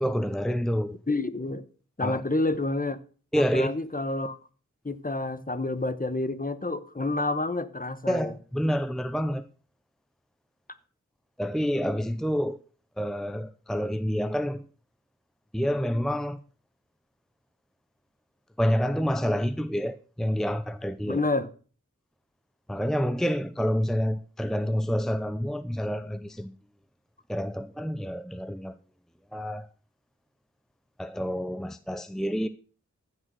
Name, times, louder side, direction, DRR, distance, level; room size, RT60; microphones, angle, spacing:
voice 1, 0.0-1.0 2.0-2.2 3.3-3.7 8.1-9.4 11.4-12.6 13.0-14.6 15.5-16.4 18.6-21.2 22.7-26.5 27.3-28.7 29.3-29.7 31.0-32.5, equal, ahead, 0.7 m, -28 dB
voice 2, 1.1-1.6 2.0-3.0 3.4-4.4 4.8-8.3 21.1-21.5, left 2 dB, 30° left, 1.1 m, -29 dB
14.5 x 6.5 x 6.3 m
wide cardioid pair, 60°, 30 cm